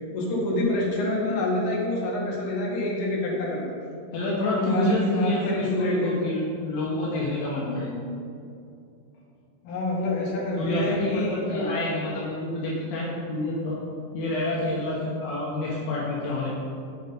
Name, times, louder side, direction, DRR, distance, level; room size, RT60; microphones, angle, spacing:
voice 1, 0.1-3.8 4.6-6.1 9.6-11.7, left 1 dB, 60° left, -4 dB, 2.2 m, -27 dB
voice 2, 4.1-7.9 10.5-13.8 14.1-16.5, left 1 dB, 80° left, -6 dB, 2.1 m, -28 dB
8.1 x 6.4 x 5.4 m, 2.5 s
omnidirectional pair, 6.0 m